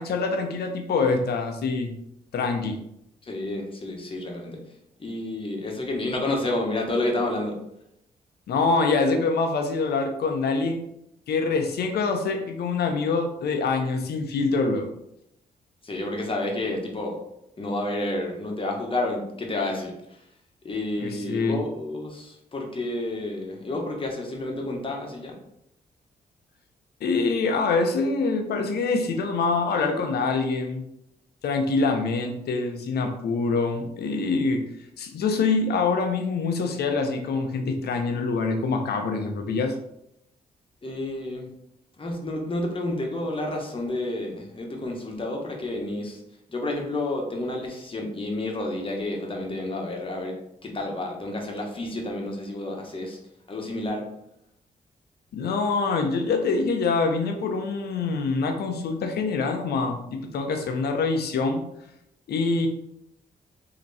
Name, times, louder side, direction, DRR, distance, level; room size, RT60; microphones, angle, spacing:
voice 1, 0.0-1.9 2.3-2.8 8.5-10.8 11.3-14.9 21.0-21.6 27.0-30.8 31.4-34.6 35.0-39.7 55.3-61.6 62.3-62.7, left 4 dB, 75° left, 5 dB, 0.7 m, -25 dB
voice 2, 3.2-4.6 5.0-7.5 15.8-17.2 17.6-20.2 20.6-25.3 40.8-41.5 42.0-46.2 46.5-50.4 50.6-53.2 53.5-54.0, left 2 dB, 30° left, 1 dB, 1.2 m, -30 dB
3.3 x 2.9 x 4.1 m, 0.80 s
cardioid pair, 65°, 17 cm